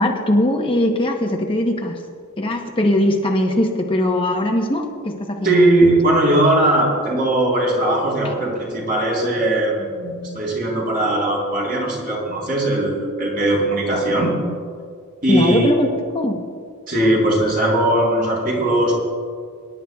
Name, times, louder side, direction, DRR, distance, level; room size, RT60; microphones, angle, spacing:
voice 1, 0.0-2.0 2.4-5.6 8.2-8.3 15.3-16.4, left 1 dB, 25° left, 1 dB, 0.9 m, -20 dB
voice 2, 5.4-14.4 15.2-15.7 16.9-18.9, right 1 dB, 40° right, -4 dB, 3.8 m, -19 dB
24.5 x 11.0 x 2.3 m, 2.1 s
head